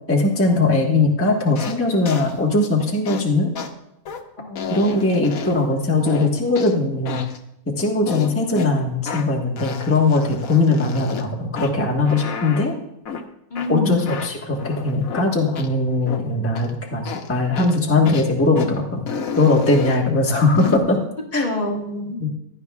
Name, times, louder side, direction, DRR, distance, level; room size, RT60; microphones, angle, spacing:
voice 1, 0.1-3.5 4.7-7.2 7.7-12.7 13.7-19.0 19.4-21.0 21.3-21.5 22.2-22.3, left 2 dB, 10° left, -2 dB, 1.3 m, -20 dB
sound 1, 1.5-1.8 2.0-2.3 3.1-3.2 3.5-3.7 4.0-4.2 4.6-5.7 6.1-6.7 7.0-7.4 8.0-8.7 9.1-9.3 9.6-11.2 11.6-11.7 12.1-12.7 13.0-13.2 13.5-13.7 14.0-15.3 15.5-15.7 16.1-16.2 16.5-16.7 17.0-17.3 17.5-17.8 18.0-18.3 18.5-18.7 19.1-20.0 20.5-20.8, left 6 dB, 70° left, 1.3 m, -31 dB
voice 2, 4.4-5.0 13.5-14.1 21.3-22.2, left 2 dB, 35° left, -1 dB, 1.5 m, -27 dB
16.0 x 11.0 x 2.4 m, 0.82 s
omnidirectional pair, 1.5 m